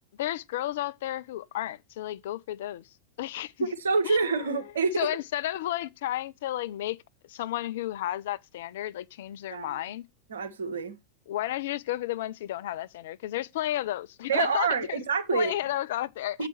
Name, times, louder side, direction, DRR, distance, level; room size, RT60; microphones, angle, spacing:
voice 1, 0.2-2.9 3.2-3.7 4.0-4.4 5.0-7.0 7.3-10.1 11.3-15.0 15.3-16.5, left 14 dB, 55° left, 0.5 m, -32 dB
voice 2, 3.6-5.1 9.5-9.8 10.3-11.0 14.3-15.5 16.4-16.5, right 5 dB, 65° right, 1.2 m, -27 dB
7.4 x 4.9 x 6.7 m
figure-of-eight pair, 90°, 0 cm